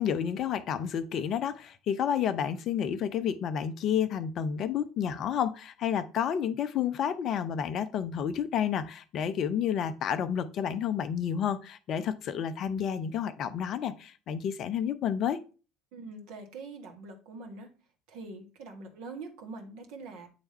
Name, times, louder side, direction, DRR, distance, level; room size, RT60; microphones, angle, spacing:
voice 1, 0.0-15.4, left 8 dB, 45° left, 13 dB, 0.5 m, -30 dB
voice 2, 15.9-17.7 18.1-20.3, right 3 dB, 55° right, 3 dB, 1.5 m, -44 dB
8.7 x 3.4 x 4.2 m, 0.35 s
figure-of-eight pair, 65°, 0 cm